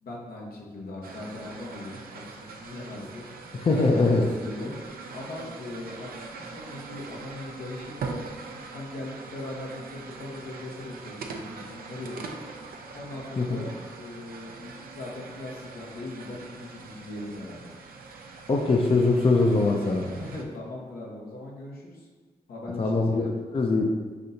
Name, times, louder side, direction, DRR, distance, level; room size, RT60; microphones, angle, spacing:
voice 1, 0.0-3.2 3.7-8.2 8.5-12.3 12.9-17.8 20.0-22.1 22.5-23.3, left 2 dB, 80° left, -2 dB, 0.9 m, -40 dB
sound 1, 1.0-20.4, right 4 dB, 75° right, 0.5 m, -42 dB
voice 2, 3.5-4.3 13.4-13.7 18.5-20.1 22.8-23.9, left 3 dB, 35° left, 2 dB, 0.5 m, -22 dB
5.9 x 2.8 x 2.6 m, 1.4 s
supercardioid pair, 45°, 16 cm